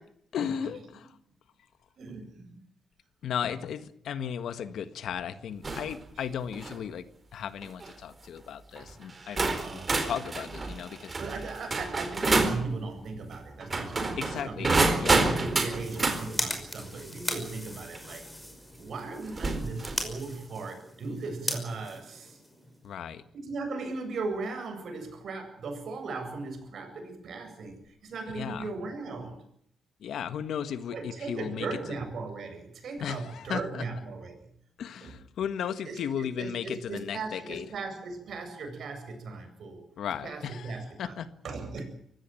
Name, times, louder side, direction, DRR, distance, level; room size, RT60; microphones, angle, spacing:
voice 1, 0.3-1.1 3.2-7.0 7.3-11.1 14.2-15.3 22.8-23.2 28.4-28.7 30.0-31.7 33.0-33.8 34.8-37.7 40.0-41.3, left 8 dB, 80° left, 12 dB, 1.6 m, -35 dB
voice 2, 2.0-2.6 6.2-6.3 9.6-10.1 11.2-18.2 18.8-22.4 23.3-29.4 30.9-34.4 35.0-35.1 35.8-39.8 40.2-41.1 41.4-41.8, right 3 dB, 65° right, 6 dB, 7.8 m, -37 dB
sound 1, 5.6-5.9 6.4-6.8 7.6-7.9 8.8-8.9 9.4-12.6 13.6-16.2 18.0-18.1 19.3-20.1, right 3 dB, 30° right, 4.4 m, -28 dB
sound 2, 15.6-22.9, left 1 dB, 5° left, 5.6 m, -38 dB
23.5 x 16.5 x 9.2 m, 0.68 s
cardioid pair, 110°, 0 cm